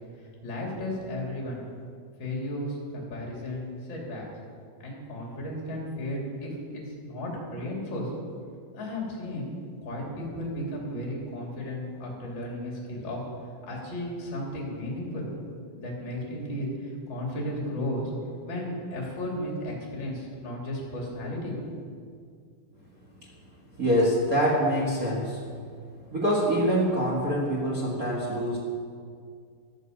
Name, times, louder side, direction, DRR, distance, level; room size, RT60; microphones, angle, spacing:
voice 1, 0.4-1.6 2.2-4.3 4.8-8.1 8.7-9.5 9.8-13.2 13.7-15.3 15.8-18.1 18.4-21.5, left 1 dB, 30° left, -2 dB, 3.2 m, -34 dB
voice 2, 23.8-25.4 26.1-28.6, equal, 60° right, -4 dB, 0.9 m, -25 dB
14.0 x 13.0 x 5.4 m, 2.2 s
omnidirectional pair, 4.8 m